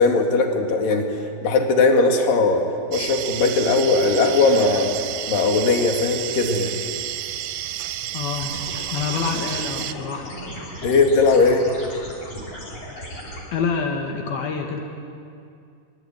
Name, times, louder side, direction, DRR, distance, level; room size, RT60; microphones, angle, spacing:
voice 1, 0.0-2.6 2.9-4.9 5.3-6.7 10.8-11.6, left 3 dB, 70° left, 3 dB, 3.7 m, -19 dB
sound 1, 2.9-9.9, right 12 dB, 75° right, 2.1 m, -31 dB
voice 2, 8.1-8.5 8.9-10.3 13.5-14.8, left 5 dB, 85° left, 2 dB, 3.5 m, -26 dB
sound 2, 8.4-13.4, equal, 40° left, 6.4 m, -36 dB
25.0 x 22.0 x 8.9 m, 2.4 s
omnidirectional pair, 4.3 m